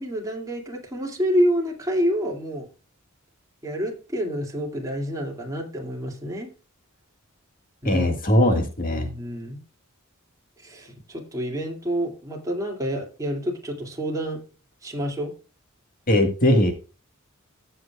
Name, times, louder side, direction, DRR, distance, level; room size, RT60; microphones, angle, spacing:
voice 1, 0.0-2.7 3.6-6.5 7.8-8.1 8.3-8.6 8.9-9.6 10.6-14.4 14.8-15.3, equal, 15° right, 0 dB, 2.4 m, -28 dB
voice 2, 7.9-9.1 16.1-16.7, left 1 dB, 40° left, 5 dB, 1.8 m, -20 dB
15.0 x 7.7 x 2.3 m, 0.34 s
head